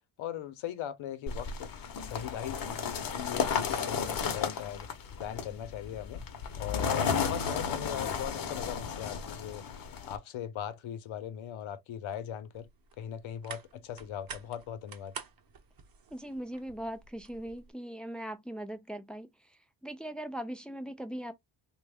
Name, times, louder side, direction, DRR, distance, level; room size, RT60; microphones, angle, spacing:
voice 1, 0.2-1.7 2.0-4.9 5.2-6.2 6.6-9.6 10.0-12.7 13.0-15.1, left 10 dB, 80° left, 0.7 m, -39 dB
sound 1, 1.3-10.2, left 6 dB, 45° left, 0.7 m, -34 dB
sound 2, 12.5-17.7, right 6 dB, 50° right, 0.8 m, -49 dB
voice 2, 16.1-21.3, right 1 dB, ahead, 0.4 m, -40 dB
3.1 x 2.3 x 3.4 m
cardioid pair, 130°, 47 cm